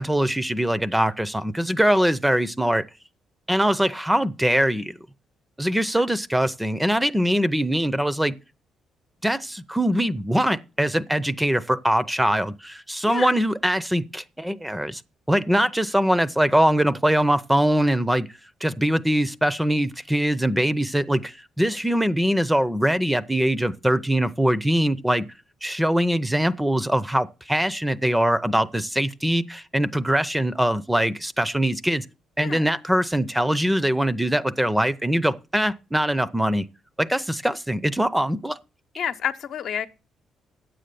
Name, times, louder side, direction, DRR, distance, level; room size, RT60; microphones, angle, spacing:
voice 1, 0.0-2.8 3.5-5.0 5.6-8.3 9.2-15.0 15.3-18.3 18.6-25.3 25.6-32.1 32.4-36.7 37.0-38.6, right 1 dB, 5° right, 0.6 m, -22 dB
voice 2, 39.0-39.9, left 8 dB, 70° left, 0.9 m, -29 dB
9.3 x 7.7 x 6.8 m
cardioid pair, 90°, 0 cm